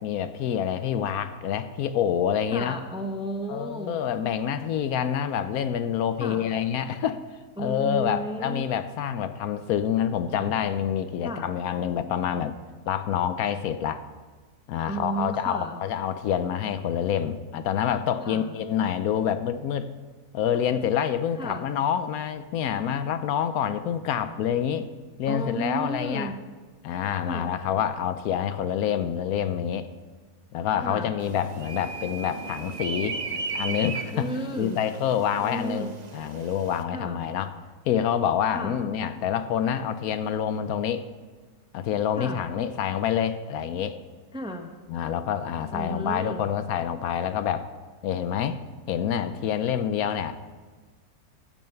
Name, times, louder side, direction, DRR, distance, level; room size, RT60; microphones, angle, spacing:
voice 1, 0.0-2.8 3.5-7.2 7.6-12.6 12.9-14.0 14.7-19.9 20.3-24.9 25.2-26.3 26.8-29.9 30.5-34.3 34.6-37.5 37.9-41.1 41.7-44.0 44.9-47.7 48.0-48.6 48.9-50.3, left 9 dB, 75° left, 12 dB, 1.1 m, -27 dB
voice 2, 2.5-4.0 6.2-6.5 7.6-8.7 11.2-11.5 14.9-15.8 18.2-18.5 21.4-21.6 25.3-26.3 27.2-27.5 30.8-31.1 34.1-34.8 35.4-35.9 36.9-37.2 38.5-38.8 42.2-42.4 44.3-44.7 45.7-46.4, right 1 dB, 5° right, 5 dB, 0.6 m, -33 dB
sound 1, 31.2-36.8, right 4 dB, 45° right, 0.5 m, -36 dB
14.5 x 7.0 x 5.7 m, 1.4 s
omnidirectional pair, 1.6 m